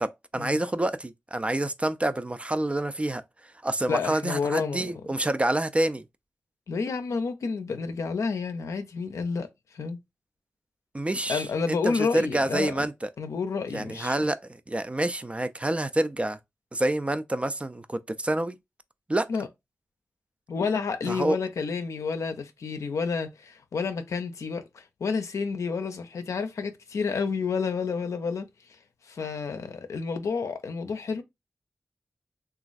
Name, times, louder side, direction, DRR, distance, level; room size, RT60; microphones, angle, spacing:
voice 1, 0.0-3.2 3.6-6.0 10.9-12.9 13.7-14.4 14.7-16.4 16.7-18.6 19.1-19.3 21.1-21.4, right 1 dB, 25° right, 0.3 m, -27 dB
voice 2, 3.9-5.1 6.7-10.0 11.3-12.9 13.2-14.2 19.3-19.5 20.5-31.2, left 5 dB, 80° left, 0.5 m, -30 dB
3.0 x 2.4 x 2.4 m
cardioid pair, 40°, 5 cm